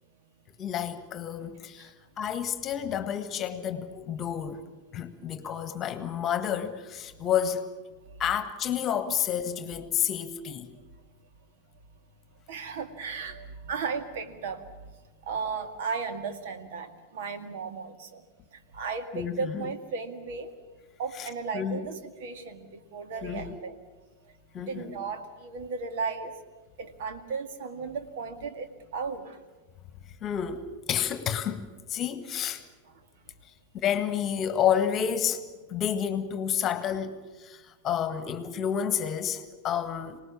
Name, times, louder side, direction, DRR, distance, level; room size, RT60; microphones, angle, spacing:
voice 1, 0.6-4.6 4.9-7.7 8.2-10.7 19.1-19.7 21.2-21.3 21.5-21.9 23.2-23.6 24.5-24.9 30.2-32.6 33.7-40.2, left 9 dB, 30° left, 1.6 m, -30 dB
voice 2, 12.5-14.9 15.2-18.2 18.5-20.5 21.0-23.8 24.7-26.3 26.8-29.4 32.9-33.0, right 5 dB, 55° right, 2.1 m, -35 dB
26.0 x 19.0 x 7.1 m
figure-of-eight pair, 90°, 0 cm